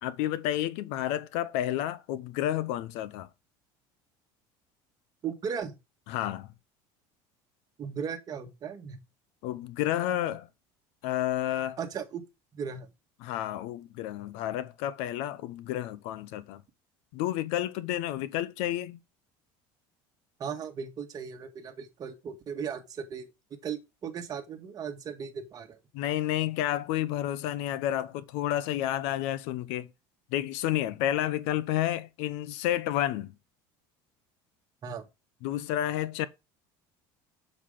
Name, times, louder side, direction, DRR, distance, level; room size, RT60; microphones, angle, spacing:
voice 1, 0.0-3.3 6.1-6.5 9.4-10.5 11.0-11.8 13.2-16.6 17.1-19.0 25.9-29.9 30.3-33.3 35.4-36.3, left 12 dB, 75° left, 0.9 m, -30 dB
voice 2, 5.2-5.8 7.8-9.0 11.8-12.2 12.5-12.9 20.4-25.8 34.8-35.0, right 7 dB, 35° right, 1.8 m, -37 dB
7.7 x 6.6 x 3.8 m
cardioid pair, 135°, 11 cm